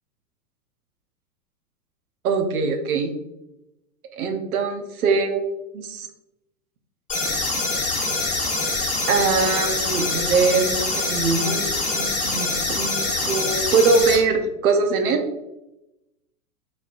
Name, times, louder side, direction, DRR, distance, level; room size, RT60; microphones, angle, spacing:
voice 1, 2.2-3.1 4.1-5.4 5.7-6.1 9.1-15.2, right 4 dB, 70° right, 6 dB, 0.9 m, -22 dB
sound 1, 7.1-14.2, left 3 dB, 15° left, 1.2 m, -24 dB
4.3 x 4.2 x 2.5 m, 0.93 s
hypercardioid pair, 110°, 45 cm